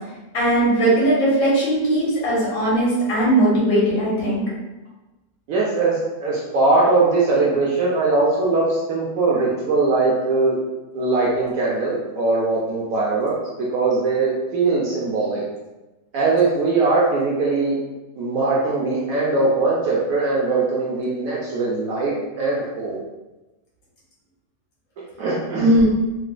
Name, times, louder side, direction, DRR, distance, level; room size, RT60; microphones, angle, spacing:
voice 1, 0.3-4.4 25.6-25.8, right 1 dB, 75° left, -6 dB, 1.8 m, -18 dB
voice 2, 5.5-10.6 10.9-13.3 13.7-15.4 16.1-17.8 18.2-23.0 25.2-25.7, right 3 dB, 70° right, -5 dB, 0.8 m, -21 dB
3.9 x 2.1 x 2.4 m, 1.1 s
omnidirectional pair, 1.9 m